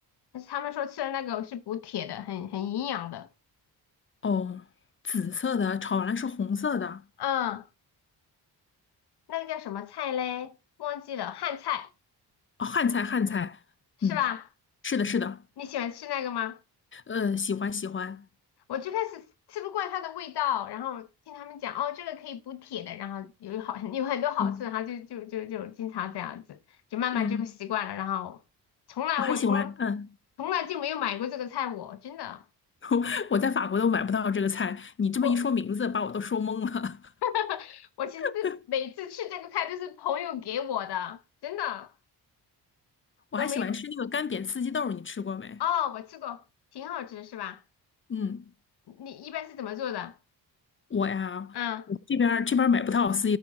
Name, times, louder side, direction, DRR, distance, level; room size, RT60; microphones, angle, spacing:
voice 1, 0.3-3.3 7.2-7.7 9.3-11.9 14.0-14.4 15.6-16.6 18.7-26.6 26.9-28.4 28.9-29.7 30.4-32.4 35.2-35.4 37.2-41.9 43.4-43.7 45.6-46.4 46.7-47.6 48.9-50.2 51.5-51.9, left 10 dB, 70° left, 1.0 m, -32 dB
voice 2, 4.2-4.6 5.0-7.0 12.6-13.6 14.0-14.2 14.8-15.4 16.9-18.2 24.4-24.6 27.1-27.4 29.2-30.1 32.8-37.0 38.2-38.6 43.3-45.6 48.1-48.4 50.9-51.6 51.9-53.4, left 6 dB, 30° left, 0.6 m, -28 dB
10.5 x 8.7 x 3.6 m
cardioid pair, 65°, 41 cm